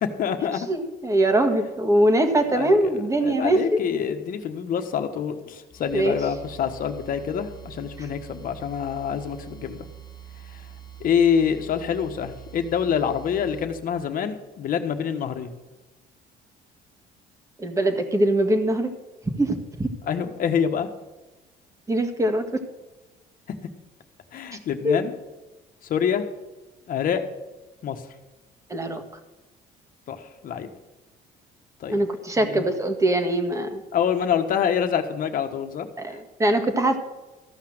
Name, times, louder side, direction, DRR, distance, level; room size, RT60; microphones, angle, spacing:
voice 1, 0.0-0.7 2.5-2.9 3.2-9.8 11.0-15.5 20.1-20.9 24.3-25.1 25.9-26.2 26.9-27.2 27.8-28.0 30.1-30.7 31.8-32.0 32.4-32.6 33.9-36.2, left 7 dB, 55° left, 6 dB, 1.4 m, -26 dB
voice 2, 0.7-3.8 5.9-6.2 8.0-8.1 17.6-18.9 19.2-19.9 21.9-22.5 24.8-25.0 28.7-29.0 31.9-33.8 36.0-37.0, right 1 dB, 20° right, 5 dB, 1.7 m, -22 dB
sound 1, 5.7-13.7, right 9 dB, 25° left, 1.2 m, -44 dB
14.0 x 5.8 x 7.7 m, 1.1 s
cardioid pair, 110°, 17 cm